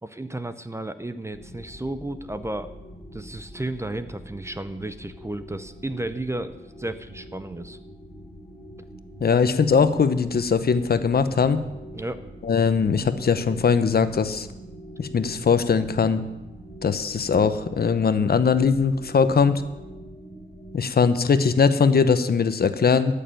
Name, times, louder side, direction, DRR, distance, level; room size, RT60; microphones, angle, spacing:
voice 1, 0.0-2.7 3.1-7.8 11.9-12.3, right 1 dB, 15° right, 11 dB, 0.6 m, -33 dB
sound 1, 1.3-20.8, equal, 10° left, 1.9 m, -44 dB
voice 2, 9.2-11.6 12.4-14.5 15.0-16.2 16.8-19.6 20.7-23.1, left 5 dB, 50° left, 12 dB, 0.8 m, -20 dB
14.0 x 6.8 x 9.1 m, 1.0 s
wide cardioid pair, 140°, 20 cm